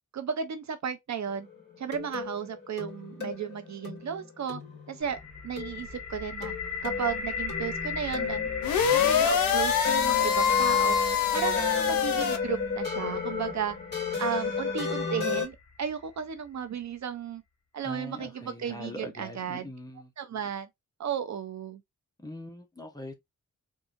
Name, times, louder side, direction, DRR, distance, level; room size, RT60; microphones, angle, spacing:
voice 1, 0.1-1.5 1.8-4.6 4.9-6.5 6.8-8.5 8.9-11.0 11.3-13.8 14.2-17.4 17.7-19.7 20.2-20.7 21.0-21.8, right 7 dB, 55° right, 0.6 m, -34 dB
sound 1, 1.3-15.5, left 6 dB, 30° left, 2.3 m, -33 dB
sound 2, 5.0-16.8, left 5 dB, 55° left, 1.1 m, -39 dB
sound 3, 8.6-12.4, left 8 dB, 85° left, 0.6 m, -25 dB
voice 2, 17.8-20.1 22.2-23.1, left 1 dB, 10° left, 0.8 m, -42 dB
3.7 x 2.7 x 2.5 m
wide cardioid pair, 120°, 33 cm